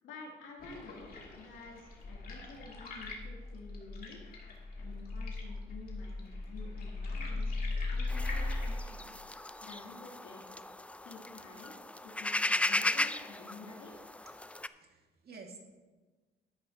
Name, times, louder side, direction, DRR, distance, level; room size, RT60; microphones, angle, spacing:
voice 1, 0.0-4.2 4.8-9.2 9.6-10.4 11.0-11.7 12.0-13.9, left 3 dB, 80° left, -2 dB, 2.8 m, -50 dB
sound 1, 0.6-8.8, left 2 dB, 50° left, 2.7 m, -38 dB
sound 2, 8.1-14.7, left 2 dB, 5° left, 0.3 m, -36 dB
voice 2, 14.7-15.6, right 4 dB, 50° right, 1 dB, 2.1 m, -51 dB
13.0 x 10.5 x 2.9 m, 1.3 s
cardioid pair, 90°, 20 cm